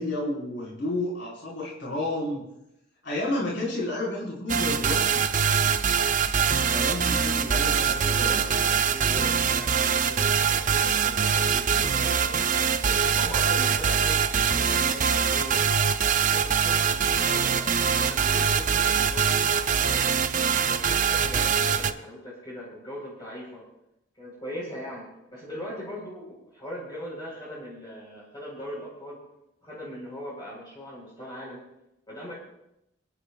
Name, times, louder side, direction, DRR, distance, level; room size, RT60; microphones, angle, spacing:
voice 1, 0.0-2.5 3.0-5.0 6.7-8.5 21.2-21.4, left 1 dB, 65° left, -3 dB, 4.8 m, -31 dB
sound 1, 4.5-21.9, right 7 dB, 40° right, 0.5 m, -23 dB
voice 2, 7.6-20.2 20.6-23.6 24.2-29.2 29.6-31.6 32.1-32.3, equal, 20° left, -6 dB, 4.3 m, -40 dB
25.5 x 11.0 x 2.4 m, 0.85 s
head